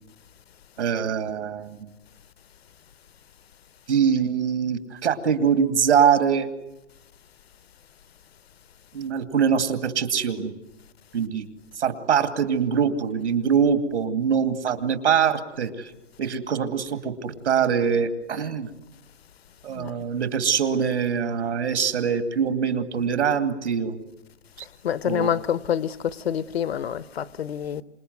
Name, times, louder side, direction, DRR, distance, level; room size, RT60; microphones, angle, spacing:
voice 1, 0.8-1.9 3.9-6.5 8.9-10.5 11.1-11.5 11.8-15.9 16.2-18.7 19.6-24.0 25.0-25.3, right 7 dB, 80° right, 2.6 m, -23 dB
voice 2, 24.8-27.8, left 9 dB, 60° left, 0.9 m, -27 dB
27.0 x 21.0 x 9.5 m
hypercardioid pair, 180°, 35 cm